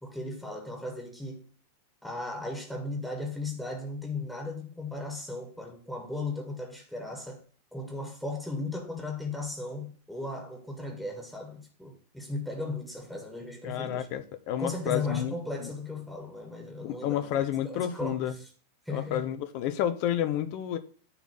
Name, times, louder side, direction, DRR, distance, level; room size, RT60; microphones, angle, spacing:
voice 1, 0.0-1.4 2.0-7.4 7.7-14.1 14.5-18.5 18.8-19.3, left 2 dB, ahead, 1.8 m, -36 dB
voice 2, 13.6-15.3 15.6-15.7 16.8-18.3 18.9-20.8, left 10 dB, 45° left, 1.0 m, -30 dB
10.0 x 3.7 x 5.8 m
figure-of-eight pair, 90°, 0 cm